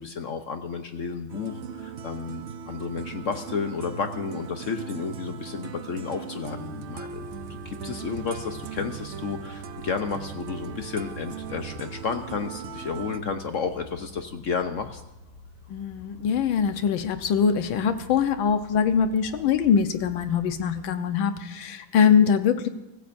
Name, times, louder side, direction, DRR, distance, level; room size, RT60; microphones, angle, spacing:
voice 1, 0.0-7.2 7.6-15.0, left 5 dB, 60° left, 7 dB, 0.8 m, -32 dB
sound 1, 1.3-13.2, right 6 dB, 75° right, 0.6 m, -38 dB
sound 2, 6.8-20.9, left 2 dB, 35° left, 3.6 m, -48 dB
voice 2, 15.7-22.7, left 7 dB, 80° left, 9 dB, 1.7 m, -23 dB
23.5 x 15.0 x 2.6 m, 0.98 s
omnidirectional pair, 2.1 m